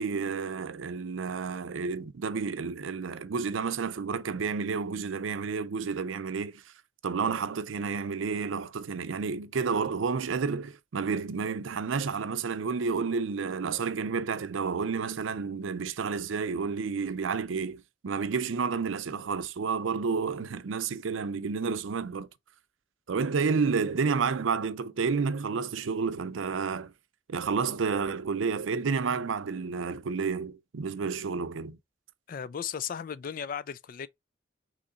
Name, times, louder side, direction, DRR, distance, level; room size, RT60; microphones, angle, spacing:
voice 1, 0.0-6.6 7.0-22.3 23.1-26.9 27.3-31.8, right 5 dB, 90° right, 0.5 m, -30 dB
voice 2, 32.3-34.1, left 8 dB, 45° left, 0.3 m, -36 dB
3.9 x 3.1 x 3.7 m
head